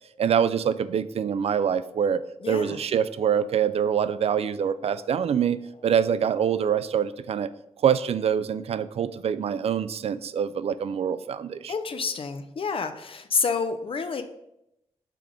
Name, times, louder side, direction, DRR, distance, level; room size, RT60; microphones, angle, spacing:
voice 1, 0.2-2.2 2.5-7.5 7.8-11.7, right 8 dB, 65° right, 15 dB, 0.4 m, -25 dB
voice 2, 2.4-2.8 11.7-14.2, left 5 dB, 55° left, 8 dB, 0.5 m, -28 dB
5.9 x 3.5 x 5.0 m, 0.83 s
cardioid pair, 70°, 11 cm